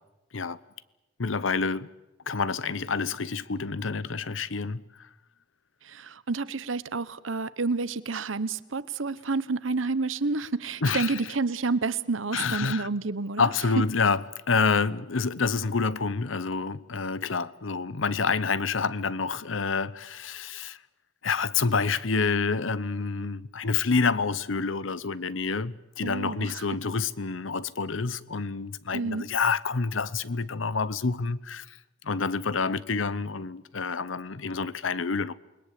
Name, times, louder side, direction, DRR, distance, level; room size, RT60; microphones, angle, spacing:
voice 1, 1.2-1.9 2.3-5.1 10.8-11.2 12.3-12.8 13.4-20.8 21.2-31.8 32.0-35.3, left 4 dB, 90° left, 0.9 m, -28 dB
voice 2, 5.8-13.5 26.0-26.6 28.9-29.3, right 3 dB, 90° right, 1.0 m, -29 dB
28.5 x 21.0 x 8.4 m
head